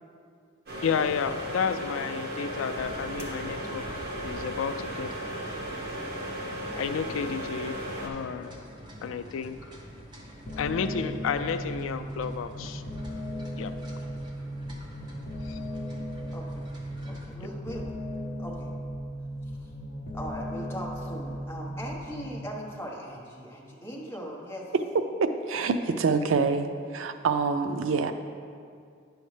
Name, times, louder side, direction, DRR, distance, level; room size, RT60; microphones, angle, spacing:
sound 1, 0.7-8.1, equal, 50° right, 1.3 m, -35 dB
voice 1, 0.8-4.0 4.2-5.1 6.8-8.5 9.0-9.6 10.6-12.8 13.6-13.7 15.5-15.6, left 6 dB, 80° left, 10 dB, 0.3 m, -31 dB
sound 2, 2.7-17.3, equal, 20° right, 0.9 m, -47 dB
sound 3, 10.5-22.5, equal, 45° left, 0.7 m, -37 dB
voice 2, 16.3-16.6 17.1-17.9 18.4-18.7 19.5-19.7 20.1-24.7 25.6-25.7 26.0-26.1, equal, 10° left, -4 dB, 1.1 m, -39 dB
voice 3, 25.2-28.1, right 4 dB, 80° right, 9 dB, 0.4 m, -26 dB
9.9 x 6.4 x 3.3 m, 2.3 s
head